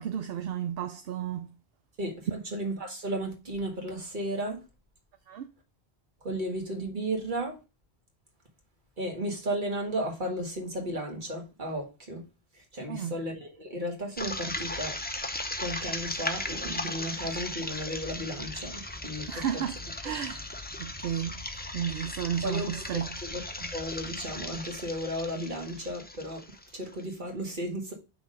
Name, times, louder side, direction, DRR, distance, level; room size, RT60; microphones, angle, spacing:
voice 1, 0.0-1.5 5.3-5.5 12.9-13.1 19.3-20.4 20.8-21.4 21.7-23.1, right 9 dB, 70° right, 0.8 m, -33 dB
voice 2, 2.0-4.6 6.2-7.6 9.0-12.2 12.5-15.0 15.6-19.5 20.0-20.1 22.4-22.7 23.2-26.4 26.7-27.9, right 1 dB, 50° right, 1.8 m, -34 dB
sound 1, 14.2-27.0, left 2 dB, 10° left, 0.5 m, -37 dB
5.9 x 3.5 x 5.4 m
omnidirectional pair, 1.1 m